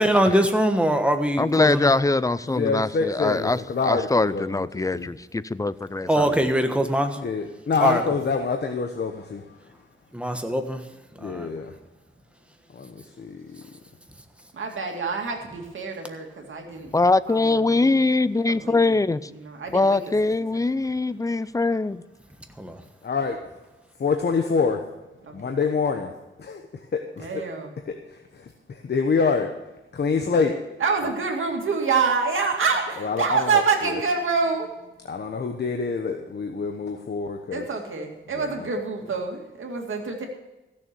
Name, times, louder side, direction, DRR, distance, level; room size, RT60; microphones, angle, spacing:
voice 1, 0.0-1.9 6.1-7.1 7.8-8.0 10.1-10.8 11.2-11.5 22.6-22.7, equal, 5° right, 5 dB, 1.4 m, -22 dB
voice 2, 1.4-6.5 16.9-19.3 19.7-22.0, left 3 dB, 15° left, 16 dB, 0.4 m, -22 dB
voice 3, 2.5-5.1 7.2-9.6 11.2-11.7 12.7-13.6 23.0-23.4 24.0-24.8 25.3-26.1 26.4-26.6 26.9-27.4 28.1-29.5 29.9-30.5 31.0-31.1 33.0-34.0 35.1-37.7 38.3-38.7, left 5 dB, 55° left, 4 dB, 1.1 m, -26 dB
voice 4, 6.0-6.6 14.5-16.9 17.3-17.9 18.5-18.8 19.4-20.0 27.2-27.7 30.8-34.7 37.5-40.3, right 5 dB, 75° right, 2 dB, 2.3 m, -26 dB
15.5 x 7.1 x 6.8 m, 1.0 s
wide cardioid pair, 95°, 21 cm